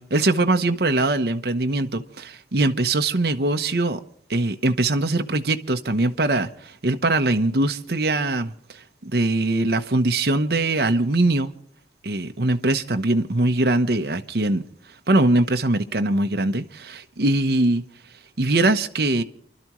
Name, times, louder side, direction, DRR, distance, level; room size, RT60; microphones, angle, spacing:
voice 1, 0.0-4.0 4.3-8.5 9.0-11.5 12.0-14.6 15.1-17.8 18.4-19.2, right 2 dB, 55° right, 0.9 m, -22 dB
29.5 x 12.0 x 3.1 m
head